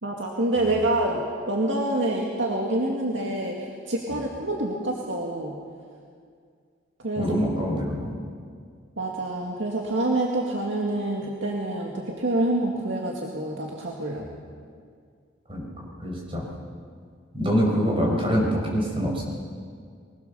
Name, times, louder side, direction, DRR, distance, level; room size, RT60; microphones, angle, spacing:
voice 1, 0.0-5.6 7.0-7.2 9.0-14.3, right 1 dB, 80° right, -1 dB, 2.1 m, -27 dB
voice 2, 7.2-8.1 14.2-14.3 15.5-15.7 16.0-16.4 17.3-19.2, equal, 30° right, -2 dB, 6.0 m, -25 dB
24.0 x 19.5 x 6.8 m, 2.1 s
head